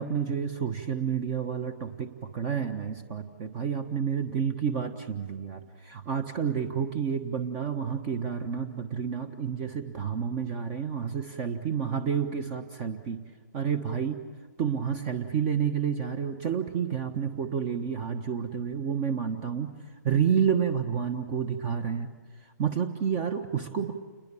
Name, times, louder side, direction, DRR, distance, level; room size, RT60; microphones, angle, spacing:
voice 1, 0.0-13.2 13.5-14.2 14.6-19.7 20.0-22.1 22.6-23.9, right 7 dB, 35° right, 9 dB, 1.3 m, -29 dB
28.5 x 21.0 x 7.2 m, 1.5 s
hypercardioid pair, 140°, 10 cm